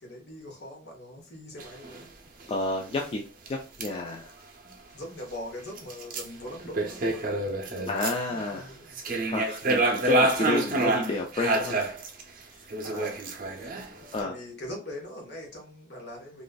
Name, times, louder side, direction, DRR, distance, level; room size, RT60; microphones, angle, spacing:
voice 1, 0.0-2.1 4.6-9.0 12.8-13.8 14.2-16.4, left 1 dB, 65° left, 1 dB, 1.1 m, -42 dB
sound 1, 1.6-2.0 2.4-2.5 2.8-2.9 3.5-3.6 3.8-3.9 5.8-8.4 8.9-12.2 12.7-14.2, right 2 dB, 50° right, 0.6 m, -27 dB
voice 2, 2.5-4.3 7.9-8.7 9.3-11.8 12.5-12.7 14.1-14.3, left 2 dB, 30° left, 1 dB, 0.3 m, -31 dB
3.0 x 2.5 x 2.3 m, 0.36 s
head